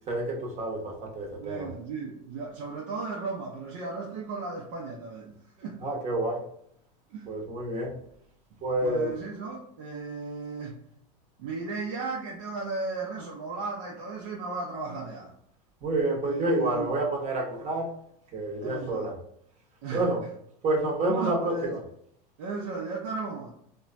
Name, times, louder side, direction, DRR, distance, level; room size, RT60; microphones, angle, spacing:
voice 1, 0.1-1.7 5.8-6.5 7.3-8.0 8.6-9.2 15.8-17.9 18.3-19.2 19.9-20.2 20.6-21.8, right 2 dB, 35° right, 0 dB, 0.9 m, -28 dB
voice 2, 1.4-5.8 7.1-7.3 8.8-10.8 11.4-15.3 16.2-16.9 18.6-19.1 19.8-20.0 21.0-21.8 22.4-23.5, right 3 dB, 70° right, -3 dB, 0.7 m, -35 dB
2.9 x 2.2 x 2.4 m, 0.69 s
supercardioid pair, 105°, 21 cm